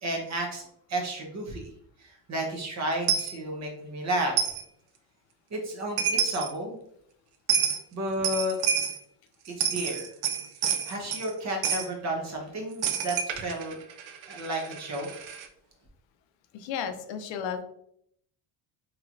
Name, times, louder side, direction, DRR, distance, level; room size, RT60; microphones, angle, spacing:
voice 1, 0.0-0.6 0.9-1.6 2.0-4.4 5.5-6.8 7.9-8.6 9.6-10.1 10.9-13.8 14.3-15.2, right 1 dB, 35° right, 0 dB, 0.9 m, -32 dB
Coin (dropping), 3.1-3.3 4.4-4.6 5.7-5.8 6.0-6.5 7.5-7.8 8.2-9.0 9.5-11.3 11.6-11.9 12.8-15.5, right 7 dB, 70° right, 0.6 m, -28 dB
voice 2, 16.5-17.6, left 7 dB, 70° left, 8 dB, 0.6 m, -33 dB
3.0 x 3.0 x 2.5 m, 0.71 s
cardioid pair, 120°, 46 cm